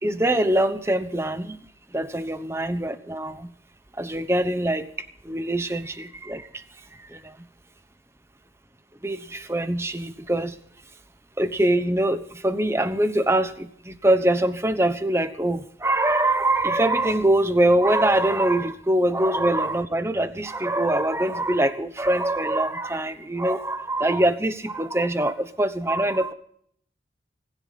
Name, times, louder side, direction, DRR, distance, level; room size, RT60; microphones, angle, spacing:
voice 1, 0.0-1.6 1.9-3.5 4.0-6.6 6.9-7.4 9.0-10.6 11.4-26.3, right 1 dB, 15° right, 10 dB, 1.0 m, -23 dB
25.5 x 11.0 x 4.1 m, 0.63 s
head